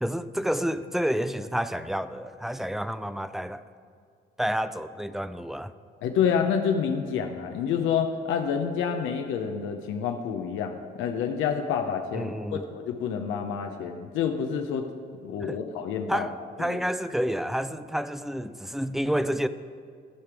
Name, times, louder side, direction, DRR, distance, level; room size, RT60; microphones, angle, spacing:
voice 1, 0.0-3.6 4.4-5.7 12.1-12.7 15.4-15.6 16.1-16.3 16.6-19.5, equal, ahead, 13 dB, 0.3 m, -29 dB
voice 2, 6.0-14.9 15.2-16.3 16.6-16.8, left 7 dB, 85° left, 5 dB, 0.7 m, -28 dB
14.0 x 5.1 x 4.7 m, 2.2 s
cardioid pair, 90°, 20 cm